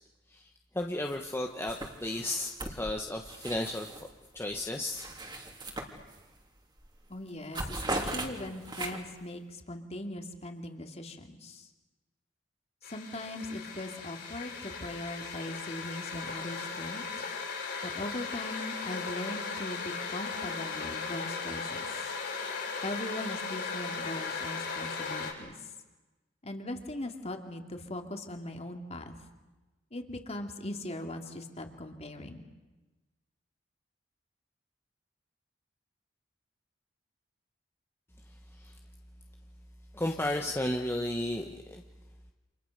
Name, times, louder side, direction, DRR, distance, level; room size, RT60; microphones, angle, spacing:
voice 1, 0.7-4.0 4.3-5.0 38.6-38.7 39.9-41.8, left 1 dB, 15° left, 2 dB, 1.2 m, -33 dB
sound 1, 1.0-1.4 1.6-4.1 4.5-6.4 6.8-7.0 7.3-9.2, right 2 dB, 25° right, 3.1 m, -39 dB
voice 2, 7.1-11.7 12.9-17.0 17.8-21.9 22.8-25.6 26.4-29.2 29.9-32.4, left 1 dB, 35° left, 4 dB, 2.6 m, -40 dB
sound 2, 12.8-25.3, left 5 dB, 60° left, 6.2 m, -37 dB
29.5 x 27.5 x 6.7 m, 1.1 s
head